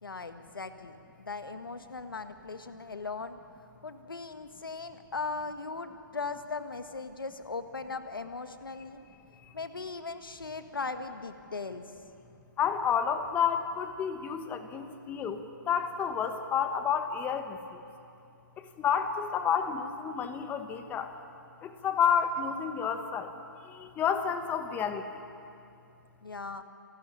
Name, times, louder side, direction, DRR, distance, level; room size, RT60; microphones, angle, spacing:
voice 1, 0.0-3.4 3.8-9.0 9.5-11.8 26.2-26.6, left 4 dB, 85° left, 8 dB, 1.7 m, -38 dB
voice 2, 12.6-15.4 15.7-17.8 18.6-21.1 21.6-23.3 23.7-25.0, left 7 dB, 15° left, 8 dB, 1.1 m, -30 dB
28.5 x 12.5 x 10.0 m, 2.6 s
hypercardioid pair, 140°, 11 cm